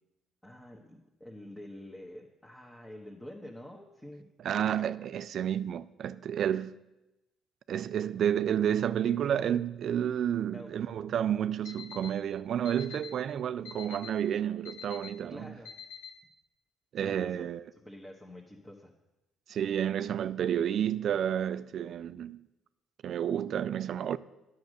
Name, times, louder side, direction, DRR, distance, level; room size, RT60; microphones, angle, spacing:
voice 1, 0.4-4.3 10.5-10.7 15.3-15.7 17.0-17.5 17.8-18.9, left 1 dB, 15° left, 1.3 m, -47 dB
voice 2, 4.4-6.7 7.7-15.5 16.9-17.6 19.5-22.4 23.0-24.2, right 9 dB, 60° right, 0.4 m, -30 dB
Alarm, 11.6-12.1 12.6-13.1 13.6-14.1 14.6-15.1 15.6-16.1, left 7 dB, 80° left, 1.0 m, -44 dB
9.2 x 6.4 x 6.5 m
supercardioid pair, 65°, 0 cm